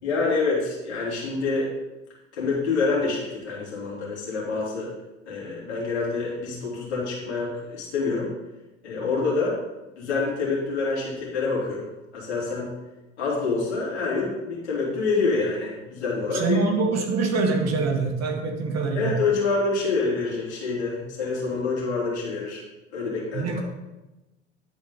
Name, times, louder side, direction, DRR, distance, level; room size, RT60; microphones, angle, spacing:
voice 1, 0.0-1.7 2.3-4.9 5.3-8.3 8.8-9.6 10.0-11.9 12.1-12.7 13.2-16.6 18.9-22.6 22.9-23.6, left 4 dB, 85° left, -5 dB, 2.9 m, -26 dB
voice 2, 16.3-19.1 23.3-23.6, right 4 dB, 50° right, 2 dB, 2.1 m, -24 dB
11.0 x 4.4 x 5.5 m, 1.0 s
hypercardioid pair, 60°, 32 cm